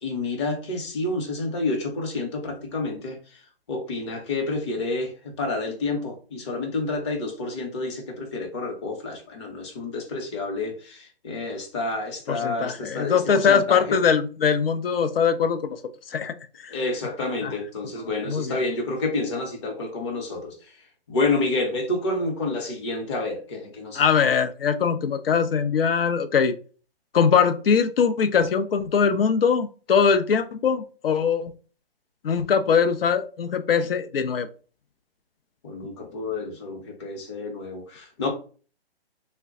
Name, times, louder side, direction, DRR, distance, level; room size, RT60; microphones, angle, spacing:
voice 1, 0.0-3.2 3.7-5.1 5.4-14.0 16.7-20.5 21.1-24.1 35.6-38.3, left 2 dB, 30° left, 2 dB, 0.8 m, -29 dB
voice 2, 12.3-15.8 16.1-16.3 16.6-16.7 17.4-17.5 18.3-18.6 24.0-26.5 27.1-31.5 32.2-34.5, left 6 dB, 65° left, 9 dB, 0.6 m, -22 dB
3.4 x 2.2 x 3.6 m, 0.38 s
hypercardioid pair, 155°, 31 cm